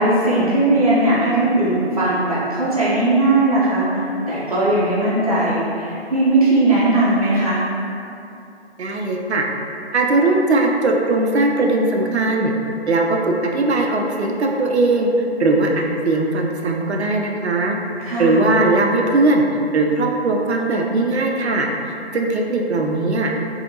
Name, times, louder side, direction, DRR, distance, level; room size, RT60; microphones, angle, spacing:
voice 1, 0.0-3.9 4.3-7.6 18.0-18.4, right 2 dB, 35° right, -10 dB, 0.7 m, -18 dB
voice 2, 8.8-9.4 9.9-12.5 12.9-15.1 15.4-17.7 18.2-19.4 19.7-23.3, right 2 dB, 75° right, 1 dB, 0.5 m, -19 dB
2.7 x 2.5 x 2.7 m, 2.6 s
figure-of-eight pair, 160°, 33 cm